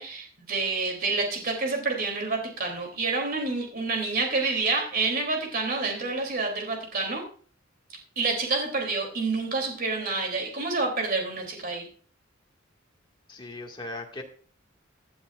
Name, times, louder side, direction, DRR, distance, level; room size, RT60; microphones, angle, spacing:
voice 1, 0.0-7.2 8.1-11.9, right 3 dB, 50° right, 2 dB, 3.3 m, -28 dB
voice 2, 13.3-14.2, left 2 dB, 25° left, 0 dB, 2.1 m, -38 dB
16.0 x 11.5 x 2.6 m, 0.43 s
head